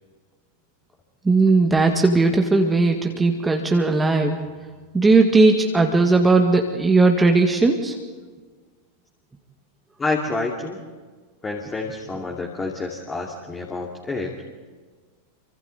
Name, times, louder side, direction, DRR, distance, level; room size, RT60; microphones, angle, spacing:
voice 1, 1.3-4.4 4.9-8.0, right 3 dB, 10° right, 3 dB, 1.8 m, -17 dB
voice 2, 10.0-10.8 11.4-14.3, left 3 dB, 15° left, 0 dB, 2.6 m, -28 dB
28.5 x 24.5 x 4.2 m, 1.4 s
figure-of-eight pair, 90°, 0 cm